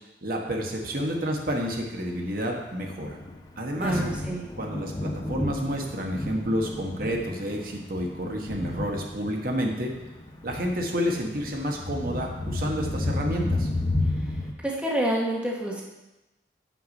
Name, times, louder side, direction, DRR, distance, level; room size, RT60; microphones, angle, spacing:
voice 1, 0.2-3.2 3.6-4.0 4.6-9.9 10.4-13.7, equal, 55° right, 1 dB, 1.3 m, -29 dB
Thunder, 0.9-14.5, left 2 dB, 20° left, 0.8 m, -32 dB
voice 2, 3.8-4.5 14.6-15.8, right 1 dB, 5° right, -3 dB, 1.0 m, -28 dB
8.1 x 5.9 x 5.2 m, 1.0 s
head